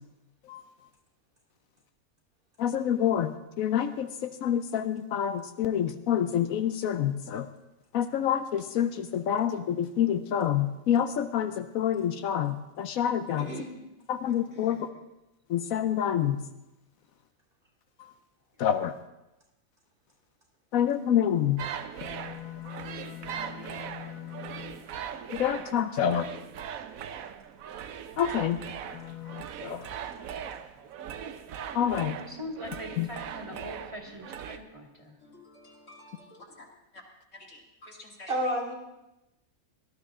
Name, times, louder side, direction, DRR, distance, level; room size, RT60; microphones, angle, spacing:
voice 1, 2.6-7.5 7.9-13.5 14.1-14.8 15.5-16.4 18.6-18.9 20.7-21.6 22.0-24.8 25.3-26.3 28.2-28.6 28.9-29.9 31.7-32.2 33.0-33.1, left 9 dB, 75° left, 10 dB, 1.1 m, -28 dB
voice 2, 13.4-13.9 38.3-38.7, right 1 dB, 40° right, -2 dB, 2.7 m, -31 dB
voice 3, 14.5-14.8 35.2-36.4 36.9-37.0 37.3-38.5, left 1 dB, 60° left, 0 dB, 2.4 m, -50 dB
sound 1, 21.6-34.6, right 8 dB, 75° right, 1.2 m, -40 dB
voice 4, 32.2-35.2, left 1 dB, 20° right, 1 dB, 2.2 m, -41 dB
18.5 x 12.0 x 3.7 m, 0.94 s
omnidirectional pair, 1.5 m